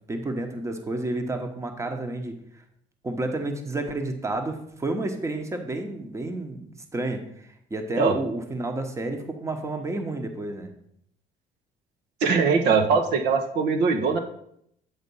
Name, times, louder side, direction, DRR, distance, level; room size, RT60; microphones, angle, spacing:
voice 1, 0.1-2.6 3.0-10.7, right 2 dB, 15° right, 6 dB, 1.0 m, -30 dB
voice 2, 12.2-14.2, right 5 dB, 80° right, 4 dB, 1.0 m, -21 dB
8.1 x 3.7 x 5.4 m, 0.70 s
cardioid pair, 110°, 17 cm